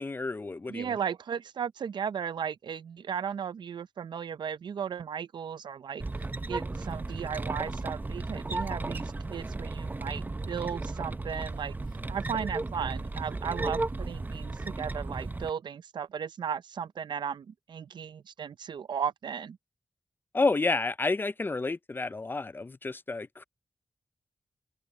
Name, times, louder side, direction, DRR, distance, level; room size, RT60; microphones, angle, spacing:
voice 1, 0.0-1.0 20.3-23.4, left 3 dB, 25° left, 0.4 m, -30 dB
voice 2, 0.7-6.0 6.5-11.7 12.1-19.6, right 7 dB, 90° right, 0.6 m, -35 dB
sound 1, 6.0-15.5, right 2 dB, 25° right, 0.6 m, -35 dB
open air
wide cardioid pair, 90°, 8 cm